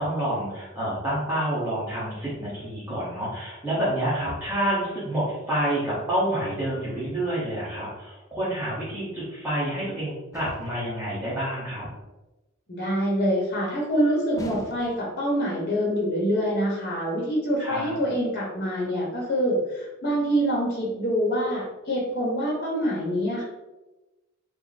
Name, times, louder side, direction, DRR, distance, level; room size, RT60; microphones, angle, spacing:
voice 1, 0.0-11.9 17.6-17.9, right 1 dB, 10° right, -12 dB, 1.0 m, -28 dB
sound 1, 10.3-10.9 14.4-15.2, left 2 dB, 15° left, 0.3 m, -44 dB
voice 2, 12.7-23.4, equal, 50° left, -4 dB, 0.9 m, -25 dB
3.2 x 2.0 x 3.9 m, 1.1 s
head